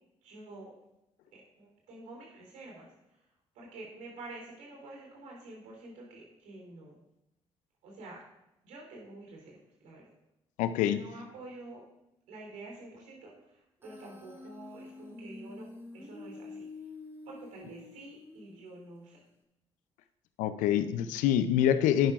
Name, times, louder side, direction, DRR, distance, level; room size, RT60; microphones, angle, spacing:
voice 1, 0.2-0.7 1.3-2.9 3.5-7.0 7.8-8.2 8.6-10.0 10.8-11.8 12.3-15.7 15.9-16.7 17.3-19.2, right 2 dB, 80° right, -2 dB, 3.5 m, -48 dB
voice 2, 10.6-11.0 20.4-22.1, left 10 dB, 80° left, 12 dB, 0.5 m, -26 dB
Human voice, 13.8-18.8, left 2 dB, 15° right, 1.9 m, -48 dB
11.0 x 10.5 x 2.5 m, 0.91 s
hypercardioid pair, 45°, 13 cm